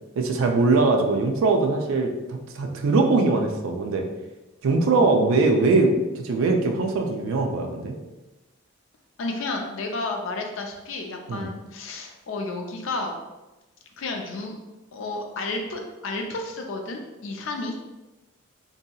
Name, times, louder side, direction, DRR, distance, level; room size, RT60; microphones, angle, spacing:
voice 1, 0.2-4.1 4.6-8.0 11.3-11.5, right 3 dB, 70° right, 3 dB, 0.4 m, -21 dB
voice 2, 9.2-13.2 14.0-14.6 14.9-17.8, left 2 dB, 65° left, 3 dB, 0.4 m, -31 dB
2.7 x 2.7 x 2.3 m, 1.1 s
head